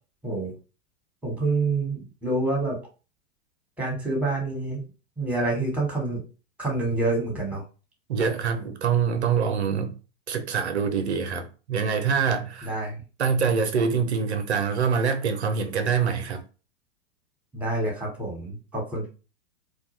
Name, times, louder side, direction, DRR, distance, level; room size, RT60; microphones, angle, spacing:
voice 1, 1.2-2.8 3.8-4.8 5.2-6.2 6.6-7.6 12.6-13.0 17.5-19.1, right 2 dB, 5° right, 1.1 m, -27 dB
voice 2, 8.1-10.0 10.3-12.7 13.2-16.4, right 6 dB, 90° right, 0.6 m, -25 dB
2.3 x 2.2 x 3.0 m
hypercardioid pair, 105°, 32 cm